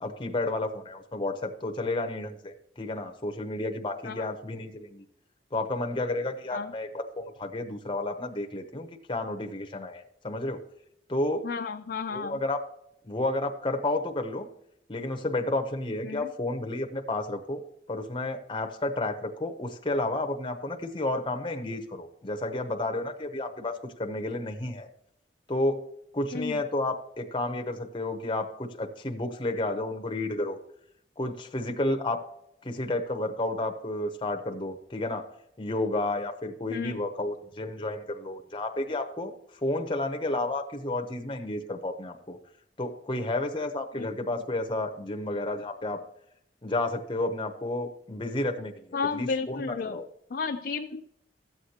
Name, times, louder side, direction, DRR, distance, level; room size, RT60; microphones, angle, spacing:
voice 1, 0.0-5.0 5.5-10.6 11.1-11.4 12.1-12.6 13.0-14.5 14.9-17.6 17.9-24.9 25.5-25.8 26.1-30.6 31.2-32.2 32.6-35.2 35.6-39.3 39.6-42.4 42.8-46.0 46.6-50.0, left 2 dB, 30° left, 5 dB, 0.7 m, -31 dB
voice 2, 11.4-12.4 16.0-16.3 26.3-26.6 36.7-37.0 44.0-44.1 48.9-50.0 50.3-51.0, left 5 dB, 60° left, 5 dB, 0.4 m, -32 dB
13.5 x 7.9 x 2.8 m, 0.77 s
head